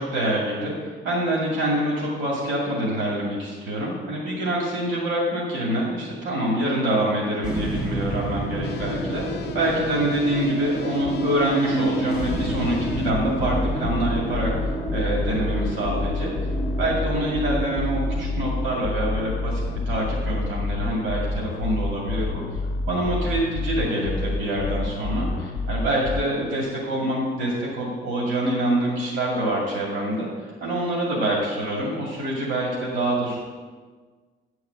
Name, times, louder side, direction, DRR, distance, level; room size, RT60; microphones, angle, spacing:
voice 1, 0.0-9.2 9.5-14.5 14.9-16.3 16.8-22.4 22.9-33.4, right 1 dB, 85° right, -4 dB, 2.3 m, -26 dB
sound 1, 7.4-23.8, right 1 dB, 5° right, 1.5 m, -31 dB
sound 2, 8.6-26.2, left 2 dB, 55° left, 0.6 m, -29 dB
10.0 x 4.7 x 7.9 m, 1.5 s
cardioid pair, 140°, 20 cm